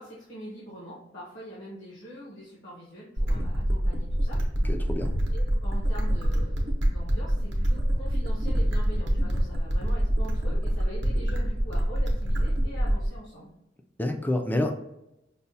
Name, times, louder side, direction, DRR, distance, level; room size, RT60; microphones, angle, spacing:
voice 1, 0.0-4.7 5.3-13.5, equal, 75° left, -8 dB, 1.0 m, -43 dB
sound 1, 3.2-13.2, equal, 65° right, 0.8 m, -26 dB
voice 2, 4.7-5.1 14.0-14.7, left 1 dB, 10° left, 5 dB, 0.3 m, -28 dB
5.3 x 2.2 x 2.7 m, 0.85 s
head